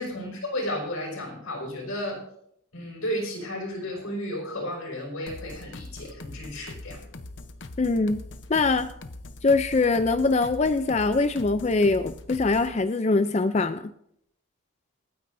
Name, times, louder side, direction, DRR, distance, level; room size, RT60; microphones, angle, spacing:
voice 1, 0.0-2.2 2.7-7.0, equal, 85° left, -1 dB, 5.7 m, -33 dB
sound 1, 5.3-12.8, left 2 dB, 55° left, 0.8 m, -42 dB
voice 2, 7.8-8.2 8.5-8.9 9.4-13.9, left 3 dB, 30° left, 10 dB, 0.4 m, -23 dB
28.0 x 9.6 x 2.6 m, 0.72 s
head